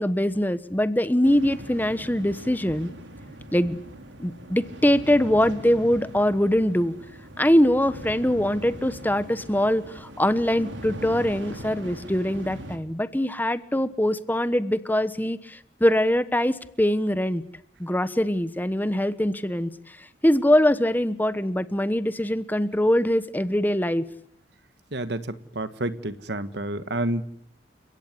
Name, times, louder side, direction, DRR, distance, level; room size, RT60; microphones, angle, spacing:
voice 1, 0.0-2.9 3.5-3.8 4.2-6.9 7.4-17.4 17.8-24.0, left 1 dB, 10° left, 13 dB, 1.1 m, -23 dB
sound 1, 1.2-12.8, right 1 dB, 85° right, 3.7 m, -40 dB
voice 2, 24.9-25.2 25.5-27.2, right 1 dB, 65° right, 12 dB, 1.6 m, -29 dB
30.0 x 17.0 x 9.8 m, 0.69 s
head